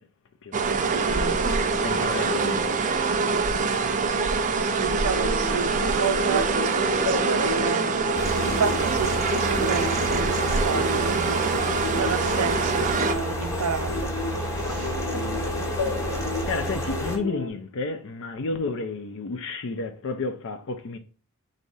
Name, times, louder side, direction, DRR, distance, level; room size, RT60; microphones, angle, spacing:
voice 1, 0.4-0.9 1.7-3.3 12.7-12.8 15.1-16.2 16.5-21.0, left 3 dB, 60° left, 0.5 m, -32 dB
sound 1, 0.5-13.1, right 4 dB, 35° right, 0.4 m, -24 dB
voice 2, 0.9-1.4 4.6-7.9 8.4-11.4 11.9-14.1 14.6-15.0, right 6 dB, 90° right, 0.5 m, -31 dB
sound 2, 4.8-17.5, left 3 dB, 80° left, 1.0 m, -33 dB
sound 3, 8.1-17.2, right 1 dB, 15° left, 0.8 m, -30 dB
4.1 x 2.7 x 4.7 m
head